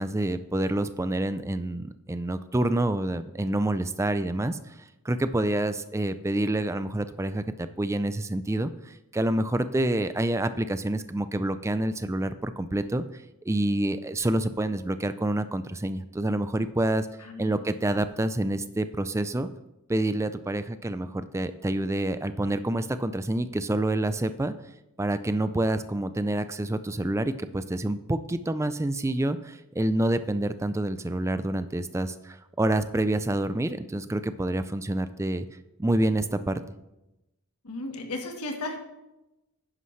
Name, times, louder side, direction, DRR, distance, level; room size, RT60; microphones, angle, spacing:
voice 1, 0.0-4.8 5.0-13.0 13.5-17.1 17.4-19.5 19.9-24.5 25.0-35.4 35.8-36.6, right 1 dB, 15° right, 12 dB, 0.4 m, -27 dB
voice 2, 17.2-17.6 37.6-38.8, left 2 dB, 90° left, 3 dB, 1.4 m, -35 dB
11.0 x 9.8 x 3.2 m, 0.95 s
head